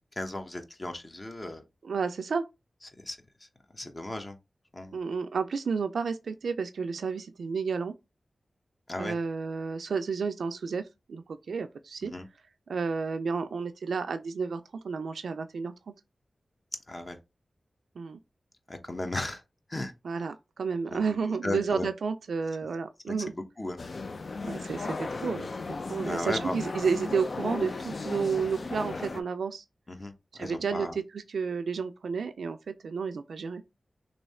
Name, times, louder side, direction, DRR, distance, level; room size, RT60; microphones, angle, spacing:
voice 1, 0.2-1.6 3.0-3.2 3.7-4.4 4.7-5.0 8.9-9.2 12.0-12.3 16.9-17.2 18.7-19.4 19.7-19.9 20.9-21.2 21.4-21.9 23.1-23.8 26.0-26.6 29.9-30.9, left 2 dB, 35° left, 0.9 m, -35 dB
voice 2, 1.8-2.4 4.9-7.9 9.0-12.1 12.7-15.7 18.0-18.2 20.0-23.3 24.4-25.5 25.9-29.6 30.3-30.9 31.1-33.6, right 5 dB, 85° right, 0.3 m, -31 dB
sound 1, 23.8-29.2, left 3 dB, 60° left, 0.4 m, -36 dB
3.1 x 2.7 x 4.2 m
cardioid pair, 45°, 0 cm